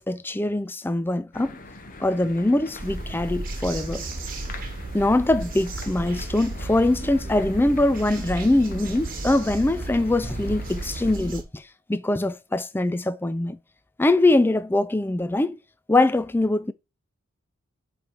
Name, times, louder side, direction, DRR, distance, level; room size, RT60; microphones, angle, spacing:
voice 1, 0.0-1.6 2.0-4.0 4.9-13.6 14.0-15.6 15.9-16.7, left 2 dB, 10° left, 0.3 m, -23 dB
sound 1, 1.3-11.1, left 2 dB, 40° left, 0.9 m, -44 dB
sound 2, 2.8-11.4, right 2 dB, 40° right, 1.3 m, -34 dB
7.4 x 3.2 x 5.2 m
head